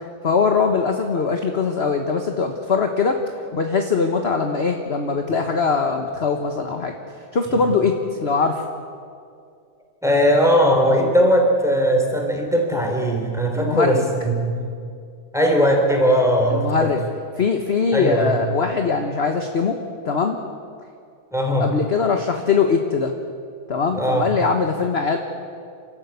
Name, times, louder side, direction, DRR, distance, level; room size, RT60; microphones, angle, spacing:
voice 1, 0.2-3.2 3.5-6.9 7.3-8.6 13.5-14.1 16.5-17.0 17.4-19.8 20.0-20.4 21.6-23.1 23.7-25.2, left 5 dB, 40° left, 4 dB, 1.4 m, -21 dB
voice 2, 10.0-14.7 15.3-16.9 17.9-18.4 21.3-21.7 23.9-24.3, equal, ahead, 2 dB, 3.4 m, -19 dB
29.5 x 13.0 x 8.4 m, 2.3 s
omnidirectional pair, 1.9 m